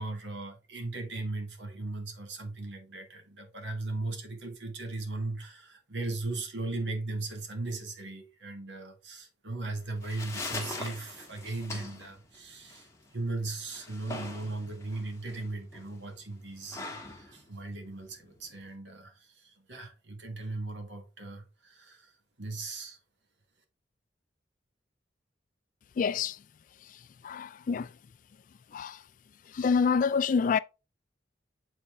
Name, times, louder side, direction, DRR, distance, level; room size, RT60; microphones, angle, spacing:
voice 1, 0.0-22.1 22.4-23.0, right 2 dB, 75° right, 1.7 m, -38 dB
sound 1, 9.8-18.8, left 2 dB, 15° left, 1.2 m, -43 dB
voice 2, 26.0-26.4 27.2-27.9 28.7-29.0 29.5-30.6, left 5 dB, 45° left, 0.3 m, -26 dB
6.9 x 4.2 x 3.6 m
head